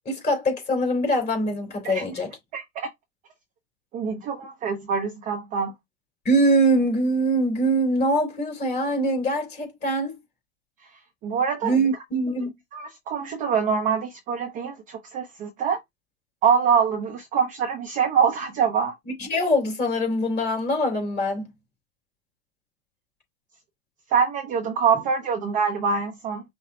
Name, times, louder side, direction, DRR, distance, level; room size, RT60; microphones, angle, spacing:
voice 1, 0.0-2.3 6.2-10.2 11.6-12.5 19.2-21.5, right 1 dB, 20° left, 2.9 m, -23 dB
voice 2, 2.5-2.9 3.9-5.7 11.2-11.8 12.7-15.8 16.4-18.9 24.1-26.4, right 6 dB, 15° right, 0.5 m, -24 dB
5.5 x 2.2 x 4.2 m
hypercardioid pair, 130°, 46 cm